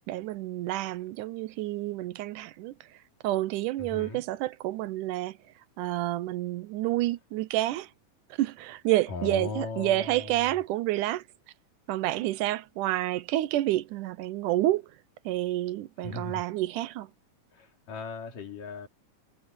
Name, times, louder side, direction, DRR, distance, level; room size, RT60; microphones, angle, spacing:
voice 1, 0.1-2.7 3.2-5.4 5.8-7.9 8.4-11.2 11.9-14.8 15.3-17.1, right 15 dB, 80° right, 2.2 m, -29 dB
voice 2, 3.8-4.2 9.1-10.6 16.0-16.4 17.5-18.9, left 4 dB, 80° left, 5.0 m, -38 dB
omnidirectional pair, 3.7 m